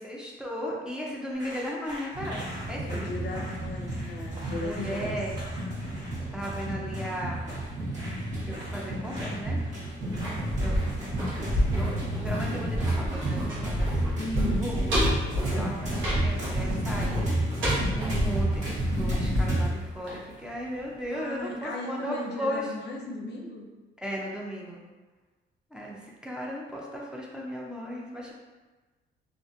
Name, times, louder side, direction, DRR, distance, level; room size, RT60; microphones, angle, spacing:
voice 1, 0.0-3.1 4.6-5.4 6.3-7.5 8.5-9.6 10.6-14.0 14.6-15.0 15.4-17.3 17.9-22.7 24.0-24.8 25.7-28.3, equal, 5° right, -4 dB, 0.5 m, -36 dB
sound 1, 1.3-12.1, equal, 20° right, 1.0 m, -45 dB
sound 2, 2.1-19.7, right 1 dB, 35° right, 1.3 m, -31 dB
voice 2, 2.8-5.1 14.2-14.7 21.1-23.7, left 2 dB, 60° left, 0 dB, 0.5 m, -36 dB
sound 3, 10.0-20.8 21.1-21.2, equal, 80° right, 1.0 m, -30 dB
2.4 x 2.4 x 2.5 m, 1.2 s
cardioid pair, 90°, 20 cm